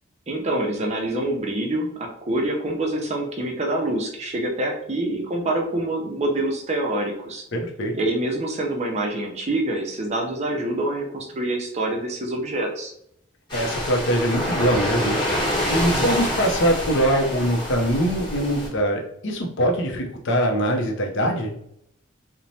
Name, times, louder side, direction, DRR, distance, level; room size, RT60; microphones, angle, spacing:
voice 1, 0.3-7.4 7.9-12.9, right 1 dB, 35° right, 1 dB, 0.5 m, -26 dB
voice 2, 7.5-7.9 13.5-15.2 15.7-21.5, equal, 65° left, 2 dB, 0.6 m, -23 dB
sound 1, 13.5-18.7, equal, 25° left, 1.1 m, -26 dB
3.0 x 2.1 x 2.7 m, 0.72 s
head